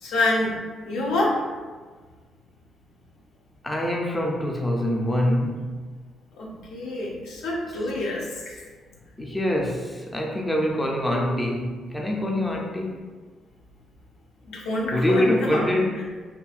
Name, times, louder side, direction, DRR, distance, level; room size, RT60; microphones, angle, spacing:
voice 1, 0.0-1.4 6.3-8.6 14.5-15.7 15.9-16.0, left 2 dB, 85° left, -2 dB, 0.5 m, -27 dB
voice 2, 3.6-5.7 9.2-13.0 14.9-16.0, left 1 dB, 15° left, 0 dB, 0.4 m, -25 dB
2.6 x 2.5 x 2.3 m, 1.4 s
cardioid pair, 90°, 0 cm